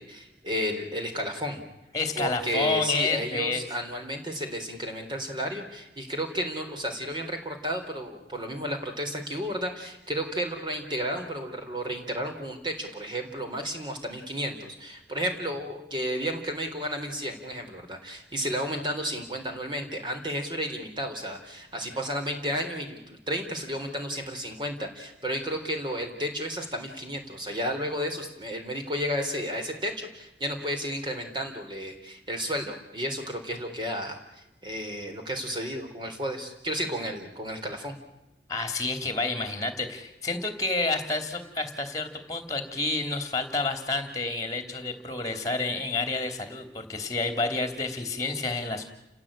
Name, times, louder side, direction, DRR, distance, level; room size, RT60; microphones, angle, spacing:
voice 1, 0.0-1.6 2.2-38.0, equal, 25° right, 4 dB, 3.8 m, -32 dB
voice 2, 1.9-3.6 38.5-48.9, left 3 dB, 20° left, 8 dB, 3.1 m, -29 dB
30.0 x 16.5 x 8.8 m, 0.93 s
head